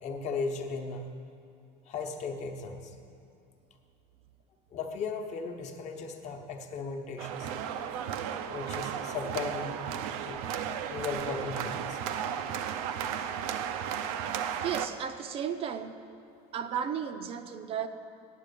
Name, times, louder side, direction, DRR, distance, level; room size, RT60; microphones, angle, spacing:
voice 1, 0.0-1.1 1.9-2.9 4.7-7.5 8.5-9.8 10.2-10.4 10.9-12.0, left 4 dB, 40° left, 4 dB, 0.9 m, -36 dB
sound 1, 7.2-14.9, right 8 dB, 85° right, 0.6 m, -34 dB
voice 2, 14.6-15.9 16.5-17.9, right 8 dB, 30° right, 9 dB, 0.5 m, -34 dB
9.3 x 8.0 x 6.7 m, 2.7 s
cardioid pair, 155°, 18 cm